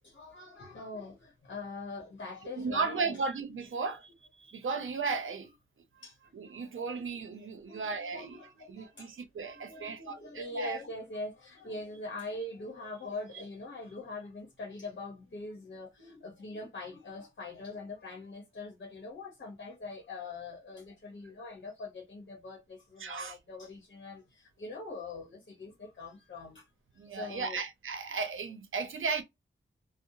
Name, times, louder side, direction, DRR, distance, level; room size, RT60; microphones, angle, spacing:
voice 1, 0.0-3.2 6.0-6.3 6.6-6.7 7.4-9.1 9.7-26.7 27.0-27.6, left 2 dB, 60° left, 0.9 m, -43 dB
voice 2, 2.6-4.1 4.4-5.5 6.3-10.8 23.0-23.4 27.0-29.2, right 4 dB, 90° right, 0.6 m, -35 dB
2.8 x 2.0 x 2.6 m
wide cardioid pair, 85°, 20 cm